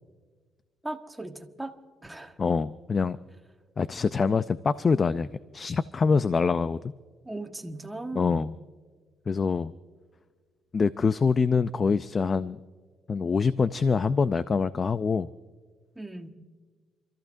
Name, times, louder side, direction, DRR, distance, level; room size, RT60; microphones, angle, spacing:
voice 1, 0.8-1.7 2.0-2.4 7.2-8.5 15.9-16.3, right 2 dB, 10° right, 4 dB, 1.5 m, -38 dB
voice 2, 2.4-3.2 3.8-5.3 5.5-6.8 8.2-8.6 9.3-9.7 10.7-12.6 13.1-15.3, left 5 dB, 40° left, 14 dB, 0.4 m, -25 dB
28.5 x 14.0 x 2.6 m, 1.5 s
cardioid pair, 90°, 0 cm